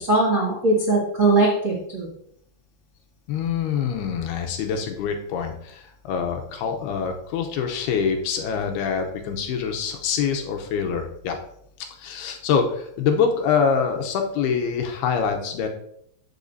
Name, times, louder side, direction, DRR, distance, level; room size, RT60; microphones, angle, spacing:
voice 1, 0.0-2.1, right 2 dB, 65° right, -7 dB, 0.7 m, -20 dB
voice 2, 3.3-11.4 12.0-15.7, left 6 dB, 75° left, 4 dB, 2.7 m, -25 dB
13.5 x 6.0 x 2.7 m, 0.72 s
omnidirectional pair, 4.9 m